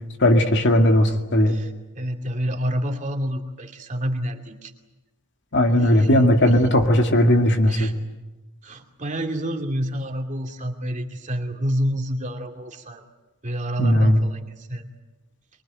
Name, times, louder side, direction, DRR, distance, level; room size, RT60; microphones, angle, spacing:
voice 1, 0.2-1.6 5.5-8.0 13.8-14.2, left 1 dB, 55° left, 5 dB, 2.2 m, -17 dB
voice 2, 1.5-4.7 5.8-6.1 6.5-6.7 7.7-7.9 8.6-13.0 13.4-14.8, equal, 35° right, 2 dB, 2.6 m, -28 dB
23.5 x 23.5 x 9.1 m, 1.1 s
head